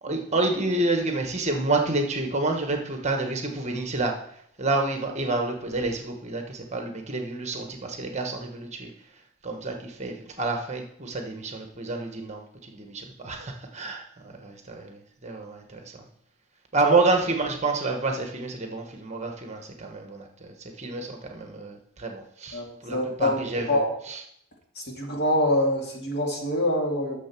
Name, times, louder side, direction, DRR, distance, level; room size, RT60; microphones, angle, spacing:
voice 1, 0.0-4.2 4.6-8.9 9.4-16.0 16.7-24.2, right 3 dB, 30° right, 4 dB, 1.2 m, -29 dB
voice 2, 22.9-23.4 23.7-23.9 24.9-27.2, left 1 dB, 50° left, -1 dB, 2.6 m, -25 dB
10.0 x 6.8 x 6.0 m, 0.70 s
head